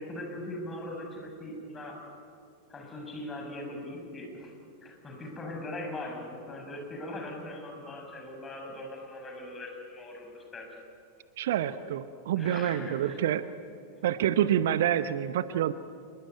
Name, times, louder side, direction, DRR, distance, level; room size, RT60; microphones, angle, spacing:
voice 1, 0.0-2.1 2.7-4.5 4.8-10.7 12.4-13.2 13.9-14.0, left 1 dB, 20° left, 2 dB, 6.9 m, -40 dB
voice 2, 11.4-13.4 14.0-15.7, right 11 dB, 55° right, 14 dB, 0.8 m, -27 dB
26.5 x 22.5 x 9.4 m, 2.4 s
figure-of-eight pair, 90°, 0 cm